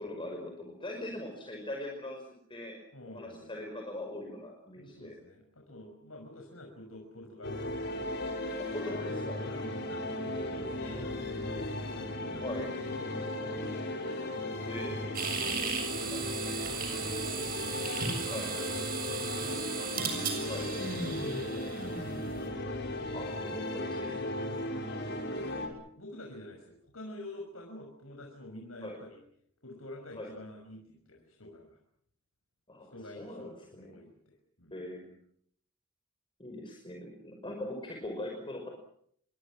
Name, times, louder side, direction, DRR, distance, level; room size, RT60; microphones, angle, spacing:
voice 1, 0.0-2.8 3.1-5.1 8.6-9.4 12.4-12.6 14.7-15.2 16.0-16.6 18.3-18.5 20.4-20.7 23.1-24.3 28.8-29.0 30.2-30.3 32.7-34.0 34.7-35.2 36.4-38.7, left 1 dB, 25° left, 2 dB, 5.5 m, -41 dB
voice 2, 2.9-3.5 4.7-7.6 9.4-13.8 15.7-16.2 16.8-19.7 21.0-22.3 24.4-25.3 26.0-29.2 29.6-31.8 32.9-34.8, left 1 dB, 80° left, 1 dB, 6.1 m, -48 dB
sound 1, 7.4-25.7, left 1 dB, 55° left, 6.0 m, -36 dB
sound 2, 15.1-22.4, right 6 dB, 45° right, 7.5 m, -36 dB
29.0 x 24.5 x 6.2 m, 0.65 s
head